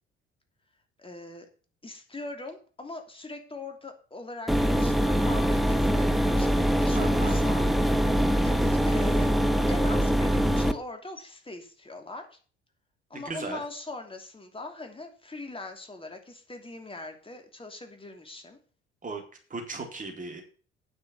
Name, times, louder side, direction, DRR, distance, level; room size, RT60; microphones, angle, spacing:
voice 1, 1.0-1.5 1.8-7.7 8.4-9.3 9.7-12.4 13.1-18.6, left 2 dB, 15° left, 4 dB, 2.9 m, -41 dB
sound 1, 4.5-10.7, equal, ahead, 1.1 m, -23 dB
voice 2, 6.9-7.4 13.1-13.6 19.0-19.2 19.5-20.4, right 3 dB, 25° right, 2 dB, 3.9 m, -36 dB
9.7 x 7.3 x 6.9 m, 0.39 s
figure-of-eight pair, 55°, 31 cm